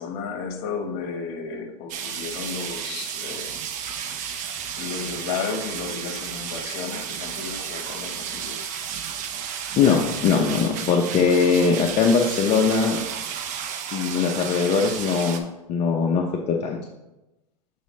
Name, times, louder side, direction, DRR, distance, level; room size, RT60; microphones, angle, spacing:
voice 1, 0.0-3.5 4.1-4.3 4.8-8.6, left 5 dB, 50° left, 4 dB, 1.3 m, -33 dB
sound 1, 1.9-15.4, right 8 dB, 40° right, 0.6 m, -32 dB
voice 2, 9.8-13.0 13.9-15.4 15.7-16.8, left 5 dB, 35° left, 0 dB, 0.7 m, -21 dB
7.1 x 4.2 x 3.2 m, 0.97 s
hypercardioid pair, 115°, 20 cm